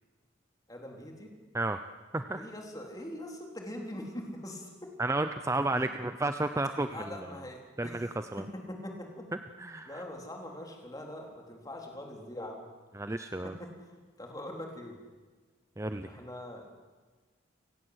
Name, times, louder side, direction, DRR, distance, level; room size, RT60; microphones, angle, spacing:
voice 1, 0.7-1.3 2.3-4.9 5.7-6.0 6.8-8.0 8.4-9.3 9.9-12.7 13.4-13.7 14.2-15.0 16.0-16.7, left 1 dB, 20° left, 1 dB, 4.0 m, -42 dB
voice 2, 5.0-7.0 7.8-8.4 9.6-10.0 12.9-13.5 15.8-16.1, right 2 dB, 15° right, 8 dB, 0.7 m, -32 dB
29.5 x 16.5 x 8.1 m, 1.4 s
head